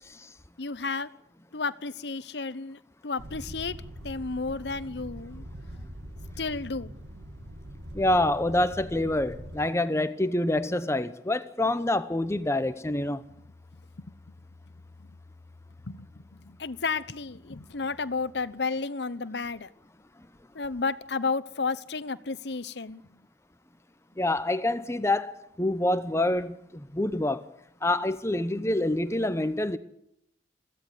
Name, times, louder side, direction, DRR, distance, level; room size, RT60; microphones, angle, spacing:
voice 1, 0.6-1.1 1.5-3.8 4.0-5.4 6.4-6.9 14.0-14.1 15.0-15.1 15.8-19.7 20.5-23.2, left 4 dB, 65° left, 1.0 m, -32 dB
sound 1, 3.2-9.6, equal, 80° right, 2.3 m, -42 dB
voice 2, 7.9-13.2 24.2-27.5 27.8-29.8, left 1 dB, 15° left, 0.9 m, -26 dB
23.0 x 16.0 x 9.3 m
head